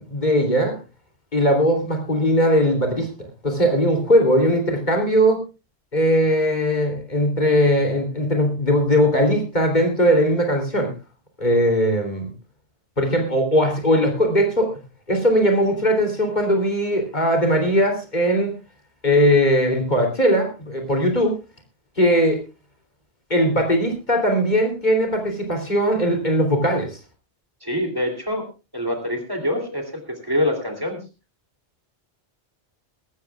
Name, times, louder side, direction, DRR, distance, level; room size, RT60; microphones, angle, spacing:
voice 1, 0.1-0.8 1.3-3.1 3.4-5.4 5.9-10.9 11.4-12.3 13.0-14.8 15.1-18.5 19.0-21.3 22.0-22.4 23.3-27.0, equal, 40° left, 3 dB, 3.3 m, -19 dB
voice 2, 27.6-28.5 28.7-31.0, left 1 dB, 20° right, 4 dB, 2.9 m, -25 dB
22.5 x 13.0 x 2.4 m, 0.29 s
omnidirectional pair, 1.1 m